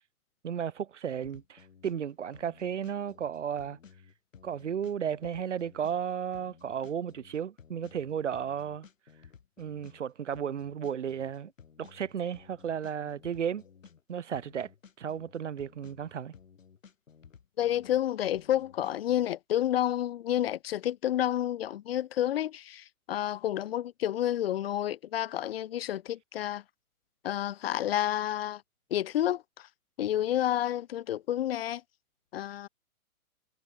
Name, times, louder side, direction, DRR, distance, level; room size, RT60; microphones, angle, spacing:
voice 1, 0.4-3.8 4.4-8.9 9.6-11.5 11.8-13.6 14.1-14.7 15.0-16.3, right 8 dB, 50° right, 3.9 m, -34 dB
sound 1, 1.1-19.3, left 7 dB, 60° left, 6.4 m, -55 dB
voice 2, 17.6-26.6 27.2-28.6 28.9-29.7 30.0-31.8 32.3-32.7, left 12 dB, 40° left, 2.7 m, -30 dB
figure-of-eight pair, 120°, 44 cm